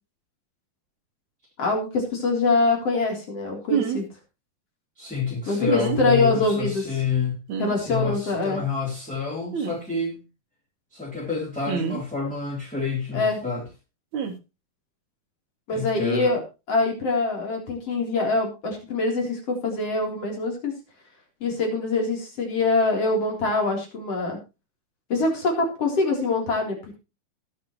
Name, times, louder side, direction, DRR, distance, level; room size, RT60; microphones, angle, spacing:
voice 1, 1.6-4.1 5.5-6.8 7.6-8.6 13.1-13.4 15.7-16.4 16.7-20.7 21.4-24.4 25.1-26.9, left 3 dB, 40° left, 1 dB, 4.5 m, -24 dB
sound 1, 3.7-4.0 5.6-6.0 7.5-7.7 9.5-9.8 11.7-12.0 14.1-14.3, right 7 dB, 55° right, 2.6 m, -26 dB
voice 2, 5.0-7.4 7.7-10.2 10.9-13.7 15.7-16.3, left 5 dB, ahead, -5 dB, 3.0 m, -28 dB
20.5 x 7.6 x 3.1 m, 0.28 s
omnidirectional pair, 4.3 m